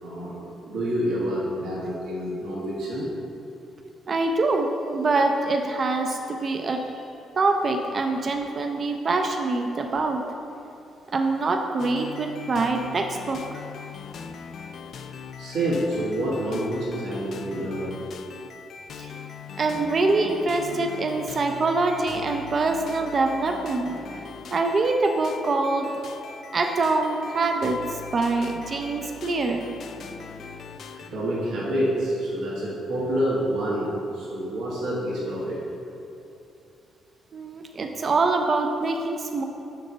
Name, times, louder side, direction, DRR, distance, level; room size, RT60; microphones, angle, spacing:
voice 1, 0.0-3.1 6.7-6.8 15.4-17.9 30.9-35.6, right 1 dB, 80° right, -7 dB, 1.4 m, -28 dB
voice 2, 4.1-6.9 7.4-10.3 11.1-13.6 19.0-19.1 19.6-23.9 24.5-25.9 26.5-29.6 37.3-39.4, right 3 dB, 45° right, 4 dB, 0.4 m, -24 dB
sound 1, 11.8-31.1, left 6 dB, 65° left, 0.3 m, -40 dB
6.6 x 6.4 x 2.8 m, 2.8 s
cardioid pair, 90°, 0 cm